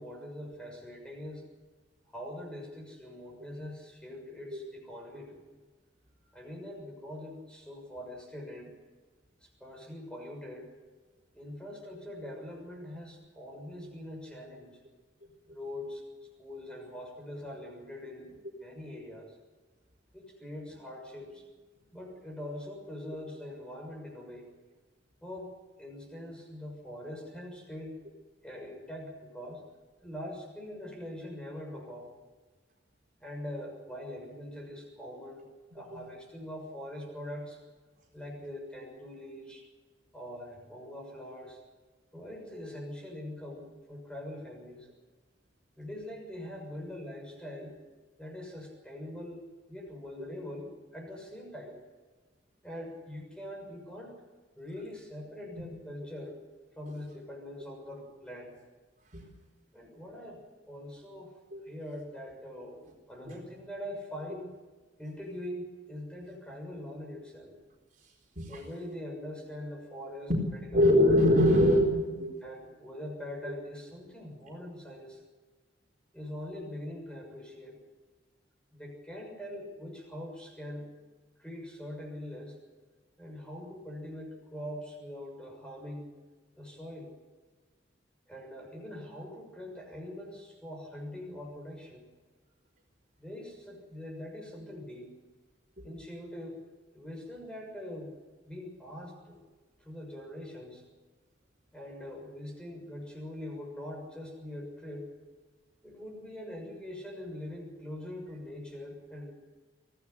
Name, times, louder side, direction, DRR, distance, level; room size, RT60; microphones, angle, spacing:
voice 1, 0.0-1.5 2.1-5.5 6.3-8.7 9.4-10.7 11.3-14.7 15.5-16.0 16.4-18.3 18.6-19.4 20.1-21.4 21.9-24.5 25.2-28.0 28.4-29.6 30.0-32.1 33.2-35.4 35.7-37.6 38.1-39.6 40.1-41.6 42.1-44.9 45.8-47.7 48.2-51.8 52.6-54.2 54.6-56.4 56.8-58.5 59.7-60.4 60.7-61.3 61.6-62.8 63.1-64.5 65.0-67.6 68.4-70.8 72.4-75.2 76.1-77.8 78.7-80.9 81.4-82.6 83.2-86.1 86.6-87.1 88.3-92.0 93.2-95.1 95.8-96.6 96.9-98.2 98.4-99.4 99.8-100.8 101.7-105.1 105.8-109.3, left 1 dB, 5° left, 1 dB, 6.6 m, -43 dB
voice 2, 70.7-72.4 73.5-73.6 95.8-95.9, left 1 dB, 45° right, 0 dB, 4.2 m, -23 dB
23.5 x 16.5 x 8.2 m, 1.3 s
head